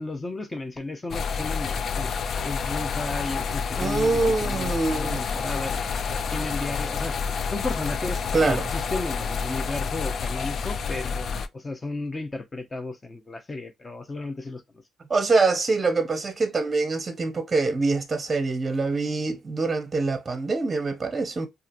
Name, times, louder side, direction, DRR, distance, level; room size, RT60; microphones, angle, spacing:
voice 1, 0.0-2.1 2.4-7.2 7.5-14.6, left 2 dB, 25° left, 0.7 m, -34 dB
sound 1, 1.1-11.5, left 6 dB, 55° left, 0.3 m, -29 dB
voice 2, 3.8-5.2 8.3-8.7 15.1-21.5, right 3 dB, 30° right, 0.7 m, -24 dB
2.7 x 2.5 x 2.5 m
cardioid pair, 90°, 0 cm